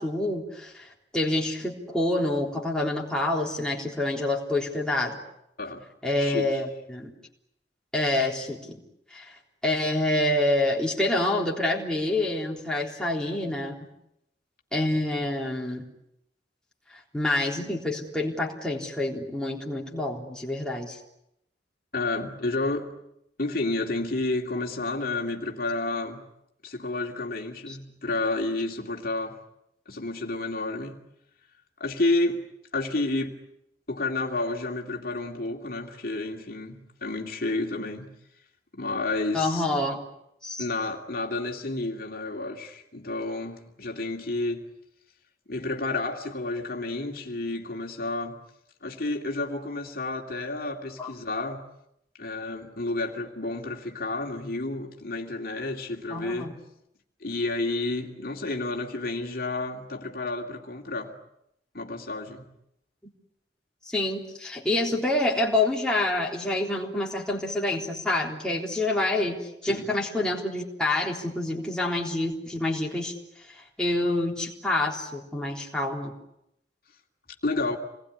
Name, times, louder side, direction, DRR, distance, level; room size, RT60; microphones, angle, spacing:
voice 1, 0.0-5.2 6.0-7.1 7.9-8.8 9.1-9.3 9.6-13.8 14.7-15.8 17.1-21.0 27.7-27.8 39.3-40.0 40.4-40.7 51.0-51.1 51.4-51.5 56.1-56.5 63.8-73.1 73.5-76.1, left 2 dB, 5° left, -3 dB, 3.7 m, -27 dB
voice 2, 6.2-6.6 21.9-22.9 23.4-26.2 26.6-29.4 29.9-31.0 31.8-32.4 32.7-33.4 33.9-38.1 38.7-39.6 40.6-44.6 45.5-48.4 48.8-51.7 52.2-56.5 57.2-61.1 61.7-62.4 69.7-69.9 77.4-77.8, left 2 dB, 50° left, 1 dB, 2.5 m, -30 dB
27.5 x 20.5 x 9.9 m, 0.81 s
head